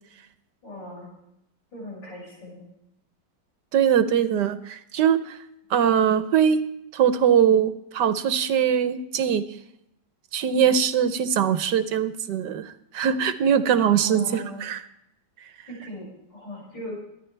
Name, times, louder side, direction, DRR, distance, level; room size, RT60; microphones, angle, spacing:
voice 1, 0.6-1.1 1.7-2.6 14.0-14.7 15.7-17.0, left 1 dB, 85° left, -4 dB, 6.9 m, -38 dB
voice 2, 3.7-5.4 5.7-6.6 6.9-9.5 10.3-14.8, right 8 dB, 75° right, 11 dB, 1.4 m, -22 dB
24.5 x 10.5 x 3.3 m, 0.80 s
omnidirectional pair, 1.9 m